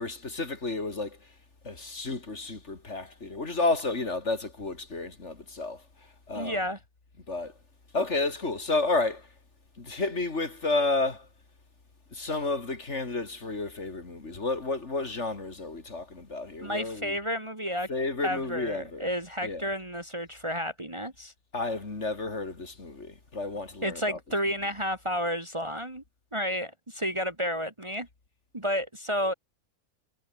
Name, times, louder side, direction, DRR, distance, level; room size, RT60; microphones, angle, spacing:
voice 1, 0.0-1.3 1.6-6.6 7.3-7.5 7.9-9.3 9.8-11.3 12.1-17.2 17.9-19.1 19.4-19.7 21.5-24.2, left 3 dB, 50° left, 3.2 m, -31 dB
voice 2, 6.3-6.8 16.6-17.9 18.2-21.3 23.8-26.0 26.3-28.1 28.5-29.3, equal, 20° right, 2.0 m, -31 dB
omnidirectional pair, 1.5 m